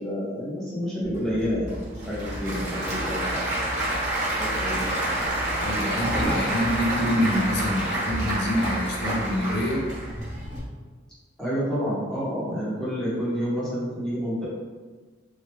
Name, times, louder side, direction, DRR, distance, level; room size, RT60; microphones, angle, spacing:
voice 1, 0.0-3.5 4.3-5.0 6.2-6.3 11.4-14.4, equal, 5° left, -9 dB, 0.9 m, -29 dB
Applause / Crowd, 1.0-10.6, right 1 dB, 35° right, 1.0 m, -28 dB
voice 2, 5.6-9.9, equal, 55° left, -2 dB, 0.5 m, -26 dB
3.2 x 2.3 x 2.9 m, 1.4 s
head